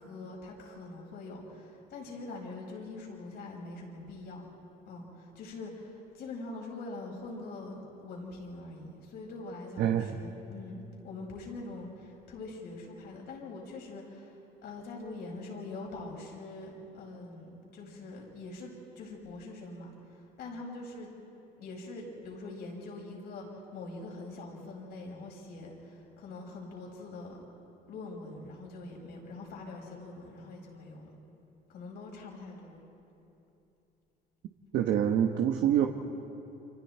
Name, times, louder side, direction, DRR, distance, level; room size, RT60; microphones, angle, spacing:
voice 1, 0.0-4.5 4.9-14.4 14.6-21.1 21.6-27.4 27.9-31.1 31.7-32.8, left 2 dB, 75° left, -1 dB, 5.7 m, -43 dB
voice 2, 9.8-10.2 34.7-35.9, right 10 dB, 75° right, 4 dB, 1.2 m, -26 dB
30.0 x 26.0 x 4.5 m, 2.8 s
cardioid pair, 110°, 17 cm